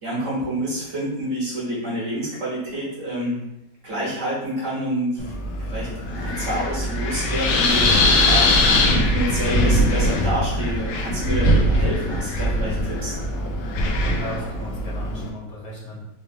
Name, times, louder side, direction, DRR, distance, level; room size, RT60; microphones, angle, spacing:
voice 1, 0.0-3.4 3.8-5.3 5.6-8.8 9.1-13.1, right 1 dB, 45° right, -7 dB, 1.2 m, -28 dB
Wind, 5.2-15.3, left 1 dB, 85° left, 1.4 m, -21 dB
voice 2, 13.9-16.0, equal, 55° left, -5 dB, 1.3 m, -35 dB
4.3 x 2.7 x 2.7 m, 0.89 s
omnidirectional pair, 2.2 m